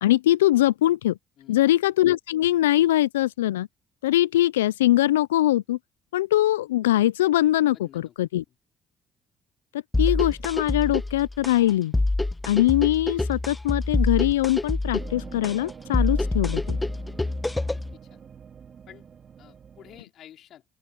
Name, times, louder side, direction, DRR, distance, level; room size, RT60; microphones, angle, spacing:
voice 1, 0.0-1.2 1.5-3.7 4.0-5.8 6.1-8.4 9.7-11.9 12.4-16.8, left 14 dB, 85° left, 0.4 m, -22 dB
voice 2, 1.4-1.8 7.7-8.1 8.5-8.6 17.9-18.2 18.9-19.1 19.4-20.6, left 11 dB, 60° left, 3.9 m, -50 dB
sound 1, 9.9-17.9, left 2 dB, 15° left, 1.2 m, -26 dB
sound 2, 15.0-20.0, right 7 dB, 45° right, 3.5 m, -45 dB
open air
hypercardioid pair, 55°, 0 cm